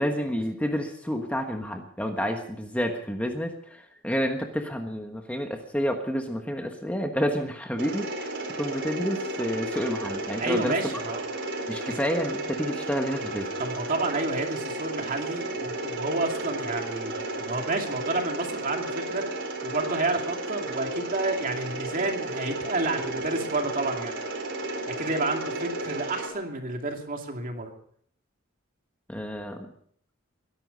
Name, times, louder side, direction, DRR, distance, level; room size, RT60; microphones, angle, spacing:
voice 1, 0.0-8.3 8.6-10.7 11.7-13.5 29.1-29.7, equal, 5° left, 3 dB, 1.3 m, -29 dB
Mechanisms, 7.8-26.3, right 2 dB, 60° right, 4.2 m, -33 dB
voice 2, 10.4-11.2 11.9-12.0 13.6-19.2 19.6-24.1 25.0-27.7, right 2 dB, 40° right, 3 dB, 2.5 m, -30 dB
21.5 x 11.5 x 5.5 m, 0.63 s
head